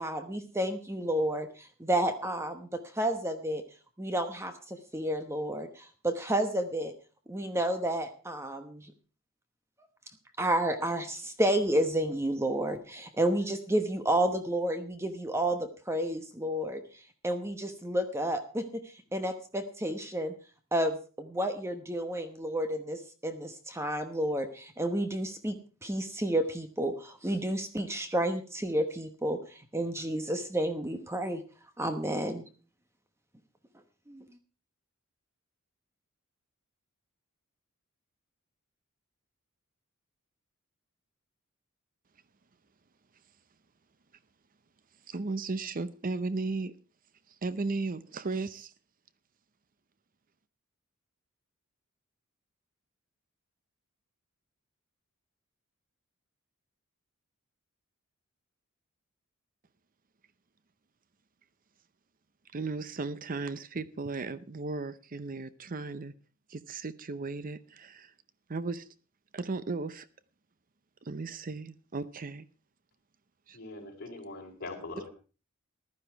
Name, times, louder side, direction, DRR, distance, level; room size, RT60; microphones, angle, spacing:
voice 1, 0.0-3.6 4.0-6.9 7.3-8.9 10.4-20.3 20.7-25.6 25.8-31.4 31.8-32.4 34.1-34.2, right 1 dB, 10° right, 1.0 m, -31 dB
voice 2, 45.1-46.7 47.4-48.7 62.5-66.1 66.5-68.1 68.5-68.9 69.3-70.1 71.0-72.5 73.5-73.6, right 3 dB, 40° right, 0.6 m, -35 dB
voice 3, 73.5-75.1, left 2 dB, 50° left, 4.7 m, -42 dB
15.0 x 12.0 x 4.6 m
head